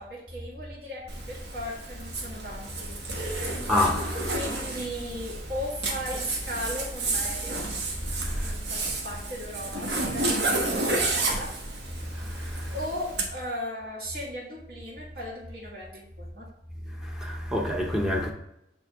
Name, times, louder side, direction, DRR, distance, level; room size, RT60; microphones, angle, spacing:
voice 1, 0.0-3.0 3.4-3.6 4.3-7.7 8.4-11.5 12.7-16.5, equal, 65° right, 1.8 m, -37 dB
Zipper (clothing), 1.1-13.3, right 2 dB, 80° right, 1.3 m, -31 dB
voice 2, 3.4-4.3 8.2-8.5 12.1-12.7 17.0-18.3, left 1 dB, 5° right, 0.6 m, -28 dB
8.1 x 3.6 x 3.5 m
head